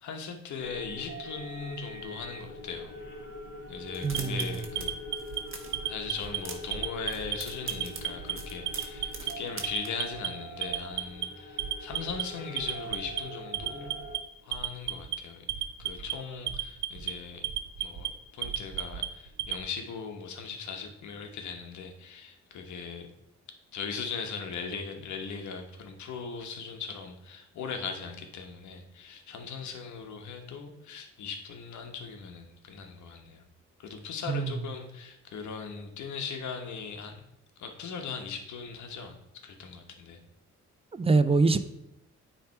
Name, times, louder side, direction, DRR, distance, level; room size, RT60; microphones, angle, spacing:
voice 1, 0.0-3.0 3.7-5.0 5.9-14.0 14.4-15.5 15.8-17.5 17.8-23.1 23.7-33.4 33.8-37.3 37.6-40.2, left 5 dB, 70° left, 5 dB, 1.1 m, -39 dB
sound 1, 0.6-14.2, equal, 40° left, 2.3 m, -43 dB
sound 2, 3.9-4.9 5.1-5.8 6.2-6.8 7.1-9.9, right 4 dB, 45° right, 1.2 m, -42 dB
voice 2, 4.0-4.4 34.3-34.5 40.9-41.6, right 4 dB, 20° right, 12 dB, 0.4 m, -24 dB
Alarm, 4.1-5.4 5.7-6.4 6.7-7.4 7.7-8.3 8.7-9.3 9.6-10.3 10.6-11.3 11.6-12.2 12.6-13.2 13.5-14.2 14.5-15.2 15.5-16.1 16.5-17.1 17.4-18.1 18.4-19.6, right 12 dB, 70° right, 0.7 m, -32 dB
9.2 x 3.3 x 4.5 m, 0.84 s
cardioid pair, 90°, 30 cm